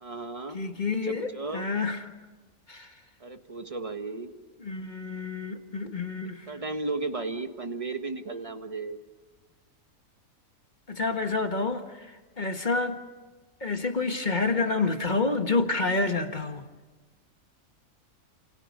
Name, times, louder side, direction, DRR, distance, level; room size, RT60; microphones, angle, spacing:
voice 1, 0.0-0.6 1.0-1.6 3.2-4.3 6.5-9.0, right 3 dB, 25° right, 1.5 m, -34 dB
voice 2, 0.5-2.1 2.7-2.9 4.6-6.5 10.9-13.0 13.6-16.7, left 3 dB, 30° left, 1.6 m, -28 dB
28.5 x 28.5 x 5.3 m
omnidirectional pair, 1.6 m